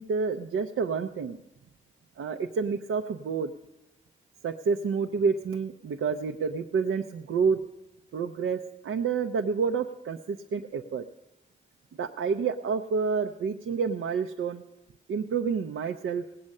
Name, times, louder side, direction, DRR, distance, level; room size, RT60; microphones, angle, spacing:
voice 1, 0.0-1.4 2.2-3.5 4.4-7.6 8.1-11.0 12.0-14.6 15.1-16.2, right 5 dB, 85° right, 5 dB, 0.6 m, -29 dB
18.0 x 8.5 x 6.4 m, 0.93 s
wide cardioid pair, 170°, 21 cm